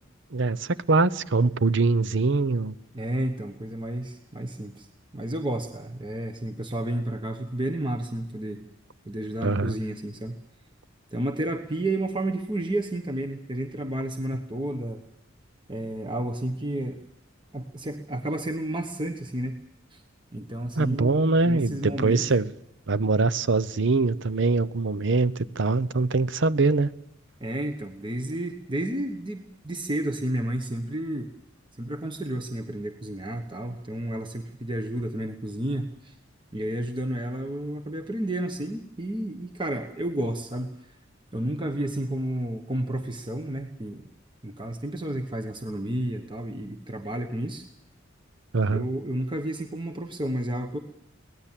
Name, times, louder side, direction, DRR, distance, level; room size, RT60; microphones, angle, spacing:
voice 1, 0.3-2.7 9.4-9.7 20.8-22.5 22.9-26.9 48.5-48.8, right 3 dB, 65° right, 0.8 m, -23 dB
voice 2, 2.9-4.9 5.1-8.6 9.1-10.4 11.1-15.0 15.7-17.0 17.5-19.6 19.9-20.0 20.3-22.2 27.4-31.3 31.8-36.2 36.5-40.7 41.3-44.1 44.4-47.6 48.7-50.8, right 1 dB, 25° right, 1.2 m, -31 dB
23.5 x 18.0 x 7.5 m
head